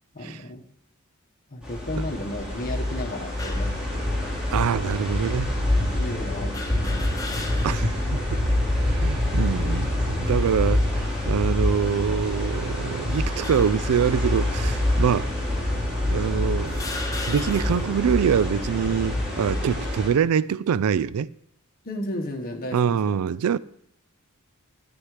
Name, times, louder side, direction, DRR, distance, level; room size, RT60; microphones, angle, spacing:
voice 1, 0.1-0.6 1.5-4.4 4.8-5.0 5.4-5.5 5.8-7.7 21.8-23.2, left 1 dB, 45° left, 1.3 m, -34 dB
sound 1, 1.6-20.1, left 1 dB, 5° right, 3.8 m, -26 dB
sound 2, 3.4-3.8 4.6-4.7 6.5-8.0 8.4-8.5 9.7-10.1 10.8-11.1 12.0-12.8 13.4-13.9 14.8-14.9 15.8-15.9 16.7-18.0, left 3 dB, 15° left, 0.9 m, -37 dB
voice 2, 4.5-5.6 7.6-8.2 8.8-15.3 16.1-16.9 17.3-21.3 22.7-23.6, right 7 dB, 85° right, 0.4 m, -24 dB
13.0 x 9.7 x 3.3 m
head